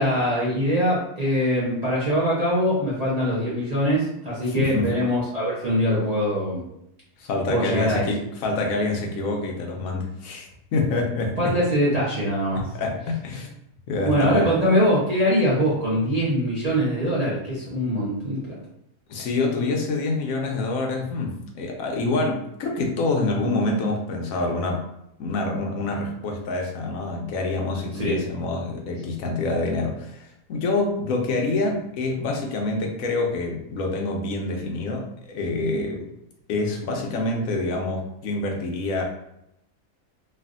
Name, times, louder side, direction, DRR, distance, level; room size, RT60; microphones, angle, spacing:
voice 1, 0.0-6.6 7.5-8.1 11.4-12.6 14.1-18.5 28.0-28.2, equal, 40° right, -7 dB, 0.6 m, -23 dB
voice 2, 4.5-4.9 7.2-11.6 12.5-13.5 13.9-14.5 19.1-24.8 25.2-36.1 36.5-39.0, left 2 dB, 75° left, 1 dB, 1.0 m, -26 dB
3.3 x 2.4 x 2.4 m, 0.80 s
omnidirectional pair, 1.5 m